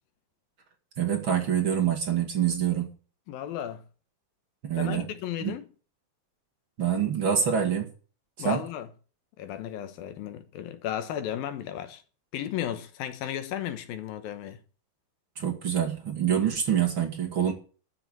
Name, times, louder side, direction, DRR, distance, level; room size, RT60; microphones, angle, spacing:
voice 1, 1.0-2.9 4.6-5.1 5.4-5.5 6.8-7.9 8.4-8.6 15.4-17.5, right 8 dB, 40° right, 2.0 m, -26 dB
voice 2, 3.3-3.8 4.8-5.7 8.4-8.9 9.4-12.0 12.3-14.6, left 10 dB, 70° left, 2.7 m, -34 dB
12.5 x 7.1 x 8.9 m
omnidirectional pair, 4.7 m